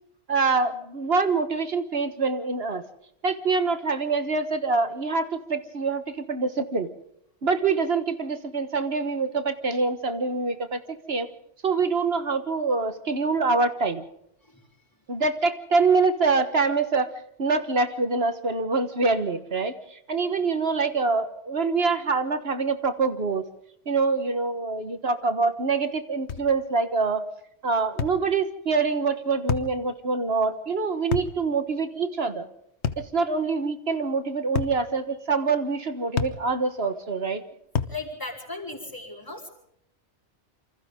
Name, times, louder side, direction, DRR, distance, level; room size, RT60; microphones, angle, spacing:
voice 1, 0.3-2.8 3.2-6.9 7.4-10.8 11.1-11.3 11.6-14.0 15.1-17.1 17.4-23.4 23.8-27.3 27.6-32.5 33.0-37.4, right 4 dB, 60° right, 10 dB, 1.6 m, -25 dB
sound 1, 26.3-26.5 28.0-28.2 29.5-29.7 31.1-31.4 32.8-33.1 34.6-34.8 36.2-36.4 37.8-38.0, left 6 dB, 65° left, 1.4 m, -27 dB
voice 2, 37.9-39.5, left 3 dB, 15° left, 1 dB, 5.0 m, -36 dB
27.5 x 25.5 x 3.7 m, 0.74 s
omnidirectional pair, 1.2 m